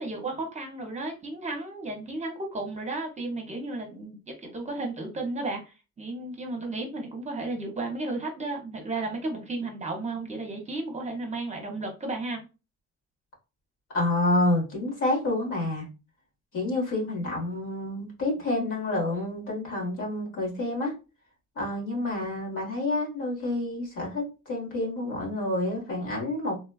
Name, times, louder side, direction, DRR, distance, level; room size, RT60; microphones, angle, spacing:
voice 1, 0.0-12.4, right 2 dB, 25° right, 2 dB, 0.7 m, -33 dB
voice 2, 13.9-15.9 16.5-20.9 21.5-26.6, left 2 dB, 80° left, -2 dB, 1.5 m, -28 dB
3.1 x 2.2 x 2.3 m, 0.29 s
cardioid pair, 140°, 31 cm